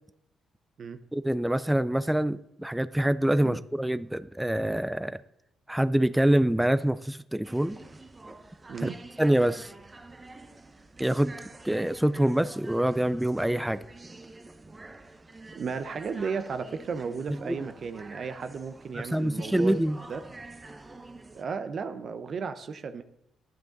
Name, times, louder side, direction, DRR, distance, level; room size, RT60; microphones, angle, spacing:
voice 1, 1.1-5.2 5.7-7.8 8.8-8.9 9.2-9.7 11.0-11.4 11.6-13.8 17.4-17.7 18.9-20.0, right 1 dB, 5° right, 15 dB, 0.4 m, -25 dB
sound 1, 7.4-21.4, right 2 dB, 20° right, 0.9 m, -47 dB
voice 2, 15.5-19.8 20.1-20.2 21.3-23.0, right 5 dB, 50° right, 10 dB, 0.7 m, -34 dB
11.5 x 10.5 x 3.9 m, 0.81 s
cardioid pair, 90°, 0 cm